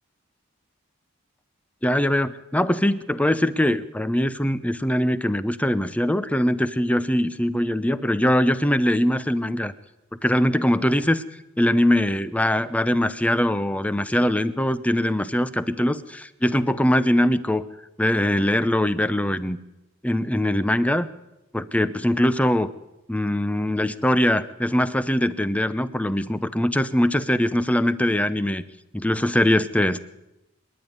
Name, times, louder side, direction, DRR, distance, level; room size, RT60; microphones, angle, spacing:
voice 1, 1.8-9.7 10.2-11.2 11.6-17.6 18.0-19.6 20.0-21.1 21.5-22.7 23.1-28.6 28.9-30.0, left 1 dB, 5° left, 14 dB, 0.7 m, -22 dB
25.5 x 11.0 x 9.5 m, 0.95 s
head